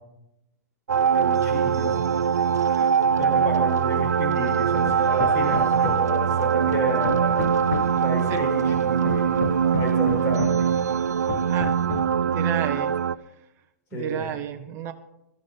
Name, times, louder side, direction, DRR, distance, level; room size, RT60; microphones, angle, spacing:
sound 1, 0.9-13.1, right 7 dB, 85° right, 0.4 m, -22 dB
voice 1, 1.1-2.0 3.2-7.4 7.9-9.3 9.7-10.7 13.9-14.3, left 1 dB, 30° left, 1 dB, 5.7 m, -31 dB
Hammer, 4.8-6.2 6.7-8.1 8.7-10.7 11.3-12.2, left 8 dB, 60° left, 1.1 m, -33 dB
voice 2, 12.2-12.9 13.9-14.9, right 10 dB, 30° right, 7 dB, 0.8 m, -31 dB
17.0 x 12.5 x 4.0 m, 0.86 s
hypercardioid pair, 120°, 9 cm